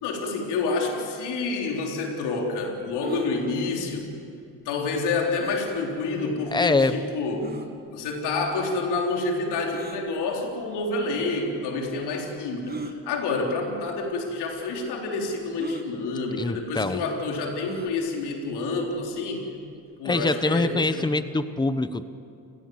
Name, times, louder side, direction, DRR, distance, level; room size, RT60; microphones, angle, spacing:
voice 1, 0.0-4.1 4.7-7.5 7.9-19.4 20.0-21.2, left 3 dB, 85° left, 1 dB, 4.0 m, -28 dB
sound 1, 3.0-3.3 5.4-5.7 6.5-6.6 7.4-7.7 9.7-10.0 11.1-11.2 12.6-13.0 13.9-14.0 14.3-14.4 15.6-15.9 17.6-17.9, right 3 dB, 25° right, 2.1 m, -36 dB
voice 2, 6.5-7.0 16.4-17.0 20.0-22.1, left 3 dB, 10° left, 12 dB, 1.0 m, -24 dB
29.0 x 16.5 x 7.9 m, 2.5 s
supercardioid pair, 75°, 39 cm